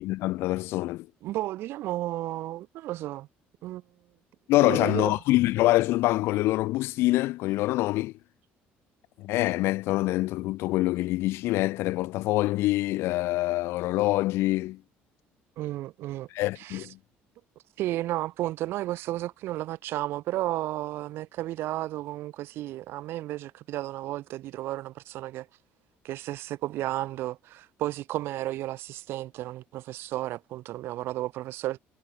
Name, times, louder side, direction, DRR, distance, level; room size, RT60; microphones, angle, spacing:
voice 1, 0.0-1.1 4.5-8.1 9.2-14.8 16.3-17.0, left 18 dB, 70° left, 0.7 m, -25 dB
voice 2, 1.2-3.3 3.6-3.8 4.6-5.1 15.6-16.3 16.6-16.9 17.8-25.5 26.0-31.8, right 15 dB, 65° right, 2.3 m, -33 dB
cardioid pair, 160°, 4 cm